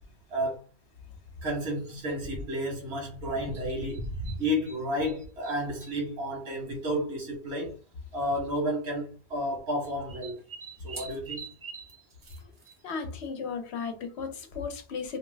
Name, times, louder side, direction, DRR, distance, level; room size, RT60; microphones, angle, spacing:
voice 1, 0.3-0.6 1.4-7.7 8.1-10.4 10.8-11.5, equal, 85° right, 1.3 m, -31 dB
sound 1, 1.9-2.2 3.5-4.8 5.0-6.0 7.0-7.1 7.2-7.3 8.3-8.6 9.8-13.1, right 5 dB, 35° right, 0.5 m, -45 dB
voice 2, 12.8-15.2, left 5 dB, 80° left, 0.9 m, -35 dB
2.7 x 2.1 x 3.2 m
omnidirectional pair, 1.1 m